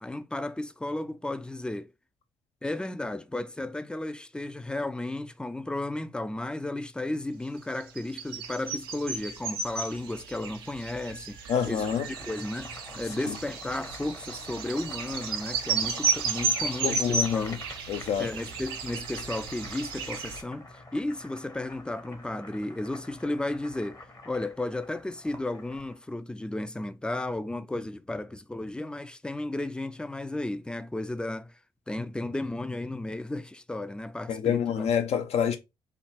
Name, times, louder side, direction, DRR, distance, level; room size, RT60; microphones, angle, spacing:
voice 1, 0.0-1.9 2.6-11.4 11.7-17.6 18.2-24.0 24.3-31.6 31.9-34.9, left 2 dB, 5° left, 0.4 m, -34 dB
sound 1, 7.8-20.4, right 5 dB, 85° right, 0.6 m, -33 dB
voice 2, 11.5-12.1 13.3-13.4 16.8-17.6 17.9-18.3 34.3-35.6, left 8 dB, 60° left, 0.7 m, -27 dB
Boiling, 11.9-26.0, left 2 dB, 30° left, 1.0 m, -47 dB
3.5 x 2.3 x 3.2 m
hypercardioid pair, 45°, 12 cm